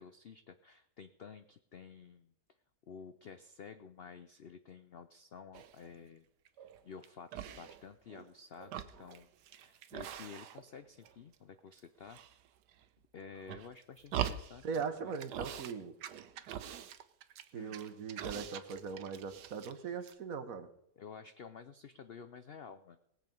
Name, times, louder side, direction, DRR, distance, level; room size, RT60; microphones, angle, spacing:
voice 1, 0.0-2.3 2.9-6.3 6.8-9.3 9.6-12.2 13.1-14.6 15.0-15.1 17.5-17.8 21.0-23.0, left 6 dB, 70° left, 10 dB, 0.5 m, -51 dB
sound 1, 5.5-6.0 6.5-7.1 7.3-8.3 8.6-10.8 11.0-11.8 12.1-12.8 13.3-14.8 15.1-15.7 16.0-19.8 20.0-20.1, right 10 dB, 80° right, 1.3 m, -43 dB
voice 2, 14.6-16.0 17.5-20.7, right 5 dB, 60° right, 10 dB, 1.4 m, -40 dB
19.0 x 7.7 x 5.3 m, 0.79 s
omnidirectional pair, 1.8 m